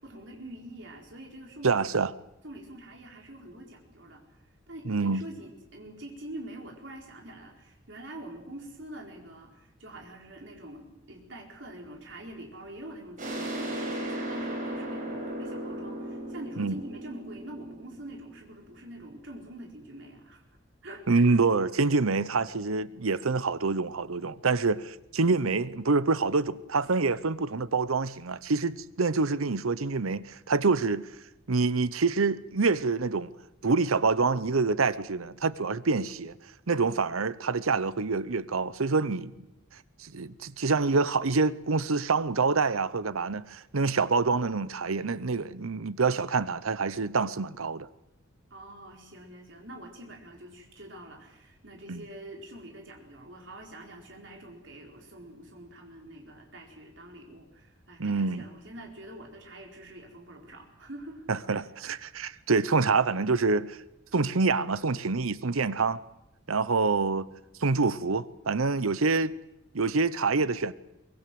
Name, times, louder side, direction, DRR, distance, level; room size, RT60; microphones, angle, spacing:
voice 1, 0.0-1.9 2.4-4.2 4.7-20.5 20.8-21.3 48.5-61.6, right 1 dB, 60° right, 4.5 m, -45 dB
voice 2, 1.6-2.1 4.8-5.2 16.6-16.7 21.1-31.1 31.5-33.3 33.6-36.4 36.7-39.3 40.0-47.9 51.9-52.0 58.0-58.5 61.3-63.8 64.1-66.0 66.5-67.3 67.6-69.3 69.7-70.7, right 4 dB, 85° right, 0.8 m, -26 dB
sound 1, 13.2-18.7, right 1 dB, 40° right, 5.8 m, -36 dB
23.0 x 20.5 x 7.8 m
head